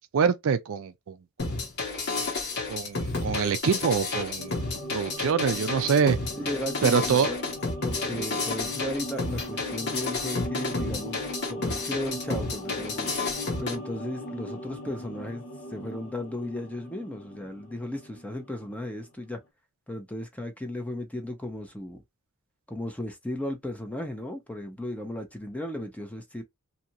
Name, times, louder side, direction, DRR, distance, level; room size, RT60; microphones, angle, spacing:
voice 1, 0.1-1.2 2.7-4.6 4.9-6.2 6.8-7.3, right 6 dB, 65° right, 0.4 m, -25 dB
sound 1, 1.4-13.8, left 3 dB, 50° left, 1.1 m, -31 dB
sound 2, 4.4-18.9 19.2-19.3, equal, 70° left, 0.7 m, -39 dB
voice 2, 6.3-7.4 7.8-11.2 11.5-13.1 13.6-15.4 15.7-19.4 19.9-22.0 22.7-26.4, left 1 dB, 5° left, 0.7 m, -35 dB
2.8 x 2.5 x 2.8 m
head